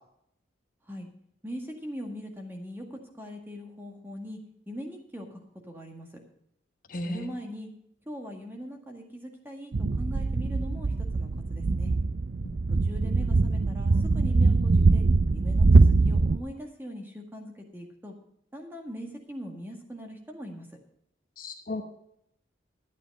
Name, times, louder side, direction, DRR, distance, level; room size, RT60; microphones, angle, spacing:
voice 1, 1.4-4.4 4.7-5.4 5.7-6.2 7.1-7.7 8.1-11.9 12.8-15.0 15.3-18.1 18.5-20.7, equal, 10° right, 2 dB, 1.8 m, -40 dB
voice 2, 6.9-7.3 21.4-21.8, left 1 dB, 45° left, 5 dB, 1.1 m, -34 dB
sound 1, 9.7-16.4, right 3 dB, 55° right, 0.5 m, -22 dB
12.0 x 9.2 x 5.4 m, 0.72 s
head